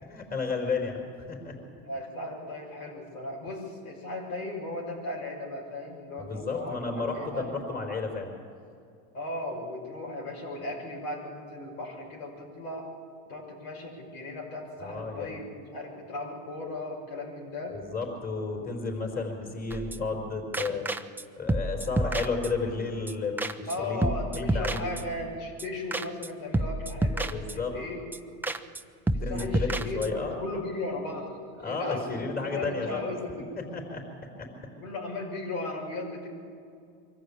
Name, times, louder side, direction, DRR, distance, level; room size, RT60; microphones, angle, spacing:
voice 1, 0.0-1.5 6.2-8.3 14.8-15.4 17.7-20.8 21.4-25.1 27.3-27.7 29.2-30.4 31.6-33.0 33.7-34.0 34.4-34.5, left 4 dB, 20° left, 1 dB, 4.6 m, -32 dB
voice 2, 1.8-7.5 9.1-12.9 13.3-17.8 23.7-28.0 29.1-33.5 34.8-36.3, left 2 dB, 85° left, -1 dB, 6.2 m, -36 dB
sound 1, 19.7-20.2 20.5-21.2 21.5-22.8 23.1-23.2 23.4-23.8 24.0-25.3 25.6-25.7 25.9-26.3 26.5-27.8 28.1-28.2 28.4-28.8 29.1-30.3, right 1 dB, 5° right, 0.6 m, -30 dB
23.5 x 14.5 x 8.6 m, 2.4 s
supercardioid pair, 110°, 40 cm